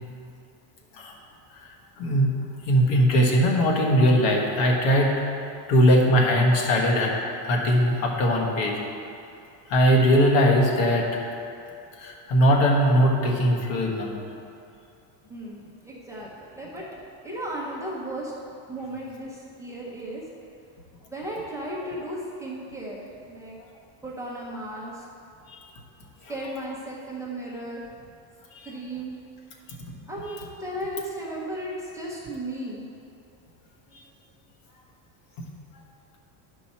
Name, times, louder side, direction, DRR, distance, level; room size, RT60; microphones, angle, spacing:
voice 1, 2.0-2.4 2.7-5.1 5.7-7.1 7.4-8.7 9.7-11.2 12.0-14.1 28.5-28.7, equal, 80° left, -1 dB, 1.7 m, -20 dB
voice 2, 15.3-16.8 17.2-18.3 18.7-20.2 21.1-23.6 24.0-25.1 26.3-27.8 28.6-29.2 30.1-32.8, right 1 dB, 5° right, -6 dB, 0.8 m, -35 dB
11.0 x 5.5 x 4.3 m, 2.6 s
cardioid pair, 175°, 50 cm